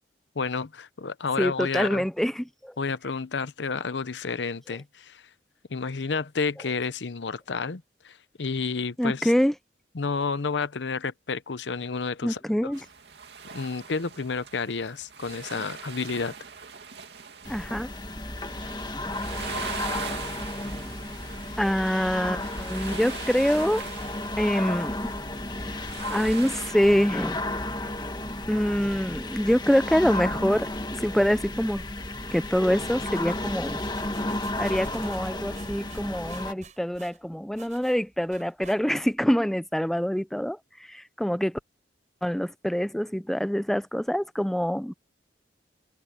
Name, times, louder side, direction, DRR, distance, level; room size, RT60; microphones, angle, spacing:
voice 1, 0.4-2.1 2.8-5.2 5.7-9.3 9.9-12.7 13.5-16.3, left 4 dB, 85° left, 0.8 m, -30 dB
voice 2, 1.4-2.7 9.0-9.5 12.2-12.8 17.5-17.9 18.9-19.0 21.6-23.8 24.4-25.2 26.1-27.4 28.5-30.7 31.0-31.8 32.3-33.8 34.6-40.6 40.9-41.6 42.2-44.9, equal, ahead, 0.4 m, -25 dB
sound 1, 12.7-26.7, right 6 dB, 70° right, 2.5 m, -42 dB
sound 2, 17.4-36.5, left 1 dB, 25° left, 1.8 m, -33 dB
sound 3, 32.4-39.2, right 4 dB, 45° right, 5.7 m, -50 dB
head